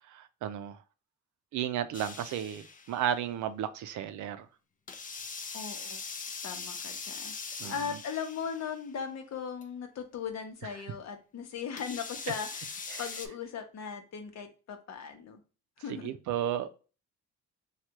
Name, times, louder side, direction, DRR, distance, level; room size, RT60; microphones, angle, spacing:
voice 1, 0.1-0.8 1.5-4.5 7.6-7.9 12.9-13.0 15.9-16.7, right 10 dB, 75° right, 0.5 m, -33 dB
sound 1, 1.9-3.1 4.9-8.9 9.6-9.7 11.8-13.3, left 5 dB, 25° left, 0.5 m, -41 dB
voice 2, 5.5-6.0 6.4-12.7 13.0-15.4 15.8-16.1, left 7 dB, 60° left, 0.9 m, -38 dB
3.3 x 2.4 x 2.9 m
cardioid pair, 90°, 30 cm